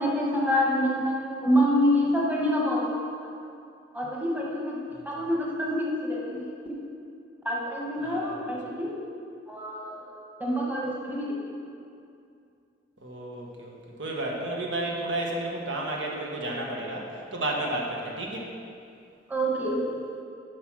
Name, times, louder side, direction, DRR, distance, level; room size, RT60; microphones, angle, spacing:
voice 1, 0.0-3.3 3.9-6.8 7.4-8.9 9.5-10.0 10.4-11.4 19.3-20.0, equal, 10° right, -4 dB, 1.3 m, -27 dB
voice 2, 8.0-8.3 13.0-18.5, right 1 dB, 75° right, -1 dB, 1.3 m, -32 dB
10.5 x 5.0 x 6.1 m, 2.5 s
head